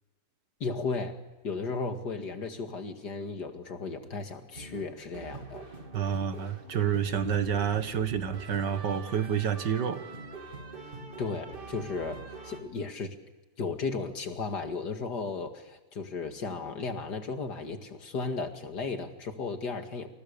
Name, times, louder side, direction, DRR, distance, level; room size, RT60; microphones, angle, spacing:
voice 1, 0.6-1.2 1.4-5.7 11.2-13.1 13.6-20.1, left 4 dB, 65° left, 6 dB, 2.7 m, -35 dB
sound 1, 4.5-12.6, right 3 dB, 30° right, 2.9 m, -44 dB
voice 2, 5.9-10.0, right 8 dB, 70° right, 10 dB, 2.2 m, -29 dB
29.0 x 28.5 x 7.0 m, 1.2 s
omnidirectional pair, 2.0 m